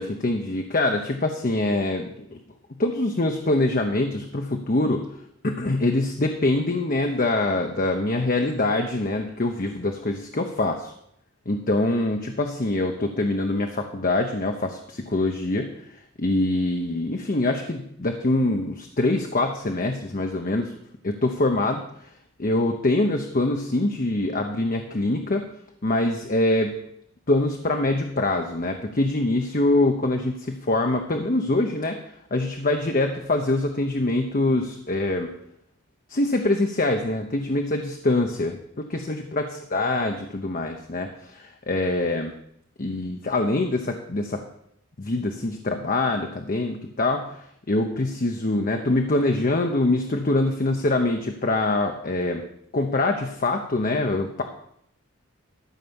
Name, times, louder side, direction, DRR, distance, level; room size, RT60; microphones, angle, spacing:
voice 1, 0.0-2.4 2.8-5.0 5.4-10.9 11.5-15.7 16.2-20.7 21.0-21.8 22.4-25.4 25.8-26.7 27.3-32.0 32.3-35.3 36.1-42.3 42.8-44.4 45.0-52.4 52.7-54.4, left 2 dB, 40° left, 4 dB, 0.8 m, -24 dB
13.0 x 5.6 x 7.1 m, 0.72 s
head